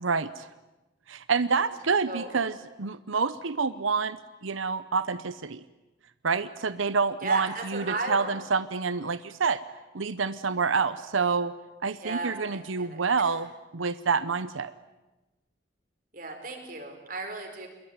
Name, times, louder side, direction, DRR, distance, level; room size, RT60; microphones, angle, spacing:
voice 1, 0.0-0.5 1.1-2.5 2.8-5.6 6.2-9.6 9.9-11.5 11.8-14.7, right 5 dB, 90° right, 13 dB, 0.8 m, -28 dB
voice 2, 7.2-8.4 12.0-13.4 16.1-17.7, right 3 dB, 45° right, 3 dB, 4.9 m, -35 dB
27.0 x 22.0 x 9.5 m, 1.1 s
head